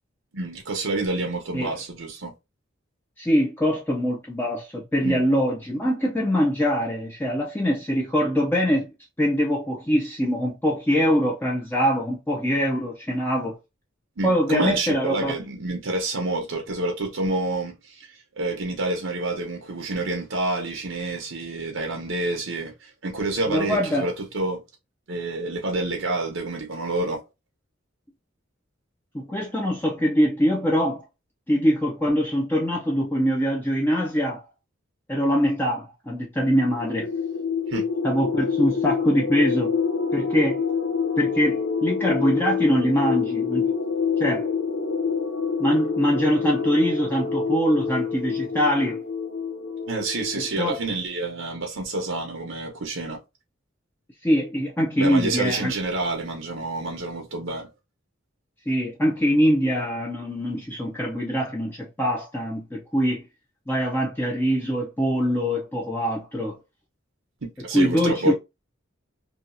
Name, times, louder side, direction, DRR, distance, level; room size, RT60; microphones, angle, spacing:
voice 1, 0.3-2.3 5.0-5.2 14.2-18.1 18.4-24.6 25.1-27.2 37.7-37.8 49.8-53.2 55.0-57.7 67.4-68.3, right 2 dB, 80° right, 0.8 m, -28 dB
voice 2, 3.2-8.9 9.2-13.6 14.2-15.4 23.5-24.1 29.1-31.0 31.5-34.4 35.1-37.1 38.0-39.8 40.1-40.6 41.2-43.7 44.2-44.5 45.6-49.0 50.4-50.8 54.2-55.7 58.7-63.2 63.7-66.6 67.7-68.3, equal, 10° left, 0.5 m, -23 dB
sound 1, 36.6-50.9, left 5 dB, 70° left, 0.5 m, -27 dB
2.8 x 2.3 x 2.5 m
head